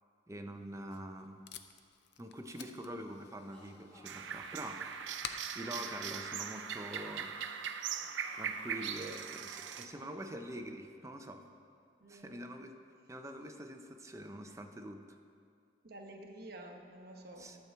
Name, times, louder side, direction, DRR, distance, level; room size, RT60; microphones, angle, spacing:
voice 1, 0.3-1.4 2.2-4.9 5.5-7.3 8.3-11.4 12.1-12.7 13.1-15.0 17.4-17.6, right 1 dB, 15° right, 5 dB, 0.6 m, -45 dB
Packing tape duct tape, 0.5-7.0, left 7 dB, 65° left, 0.5 m, -52 dB
sound 1, 3.5-11.1, equal, 5° left, 1.8 m, -62 dB
sound 2, 4.0-9.9, right 7 dB, 85° right, 0.5 m, -40 dB
voice 2, 9.8-10.1 12.0-12.4 15.8-17.6, right 1 dB, 60° right, 3 dB, 1.0 m, -51 dB
12.0 x 4.5 x 7.3 m, 2.3 s
head